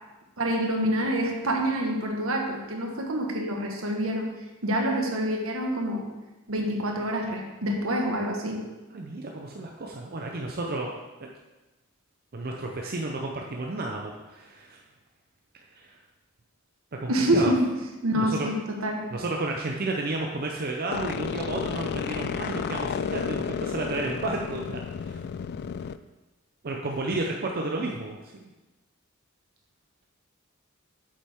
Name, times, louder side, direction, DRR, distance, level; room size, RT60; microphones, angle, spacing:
voice 1, 0.4-4.3 4.6-6.1 6.5-8.6 17.1-17.7 18.0-19.1, right 1 dB, 75° right, 2 dB, 1.4 m, -26 dB
voice 2, 8.9-10.9 11.2-11.3 12.3-14.8 15.7-16.0 17.0-17.5 18.1-18.5 19.1-25.2 26.6-28.5, right 2 dB, 50° right, 0 dB, 0.7 m, -32 dB
sound 1, 20.9-26.0, left 7 dB, 50° left, 0.3 m, -32 dB
8.8 x 7.5 x 3.6 m, 1.1 s
head